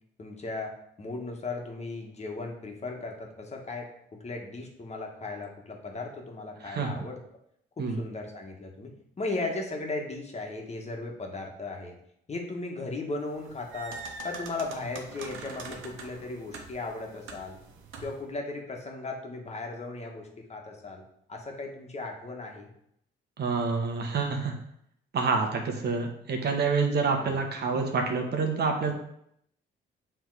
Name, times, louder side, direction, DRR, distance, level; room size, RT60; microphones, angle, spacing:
voice 1, 0.2-7.2 7.8-8.9 9.2-11.9 12.3-14.0 14.2-17.6 18.0-21.0 21.3-22.7 27.2-27.4, left 3 dB, 35° left, 1 dB, 1.5 m, -36 dB
sound 1, 13.3-18.3, right 4 dB, 85° right, 1.0 m, -43 dB
voice 2, 23.4-24.5 25.1-28.9, right 4 dB, 55° right, 3 dB, 1.2 m, -27 dB
7.2 x 3.5 x 4.8 m, 0.72 s
cardioid pair, 90°, 20 cm